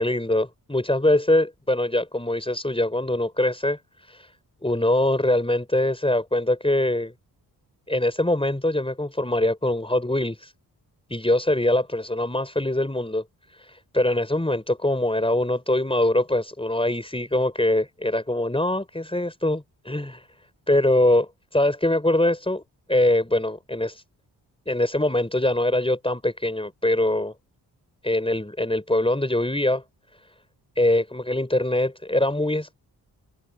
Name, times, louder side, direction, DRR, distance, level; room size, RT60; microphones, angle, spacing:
voice 1, 0.0-4.3 4.6-7.1 7.9-10.5 11.1-13.2 13.5-20.3 20.7-22.6 22.9-24.0 24.7-27.3 28.0-29.8 30.8-32.7, left 1 dB, 10° left, 6.2 m, -23 dB
supercardioid pair, 40°, 44 cm